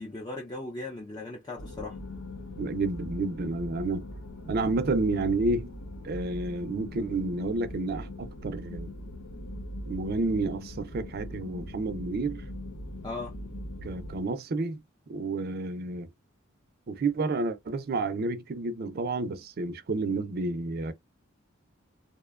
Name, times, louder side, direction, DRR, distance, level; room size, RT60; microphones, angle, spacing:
voice 1, 0.0-2.0 13.0-13.3, left 2 dB, 20° left, 0.4 m, -38 dB
sound 1, 1.6-14.2, left 1 dB, 75° left, 0.6 m, -40 dB
voice 2, 2.6-4.0 4.5-5.7 6.0-8.9 9.9-12.4 13.8-14.8 15.1-16.1 16.9-20.9, right 3 dB, 50° right, 0.4 m, -30 dB
2.6 x 2.1 x 2.3 m
head